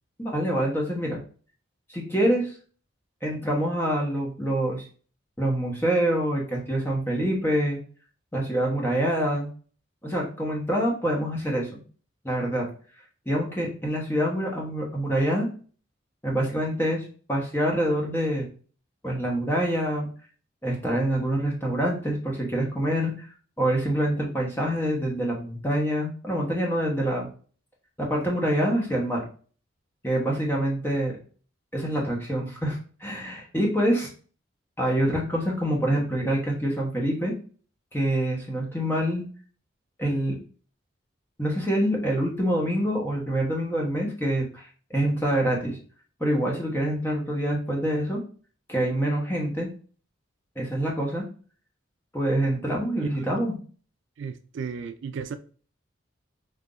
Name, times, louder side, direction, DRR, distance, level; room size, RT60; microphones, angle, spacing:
voice 1, 0.2-1.2 1.9-2.5 3.2-4.9 5.4-7.8 8.3-9.5 10.0-11.8 12.2-12.7 13.3-15.5 16.2-18.5 19.0-20.1 20.6-23.3 23.6-27.3 28.0-29.2 30.0-31.2 31.7-34.1 34.8-37.3 37.9-39.2 40.0-40.4 41.4-45.8 46.2-48.2 48.7-49.7 50.6-51.2 52.1-53.5, right 1 dB, 10° left, 1.0 m, -26 dB
voice 2, 53.0-53.3 54.2-55.4, right 6 dB, 65° right, 0.3 m, -34 dB
3.8 x 2.7 x 3.8 m
head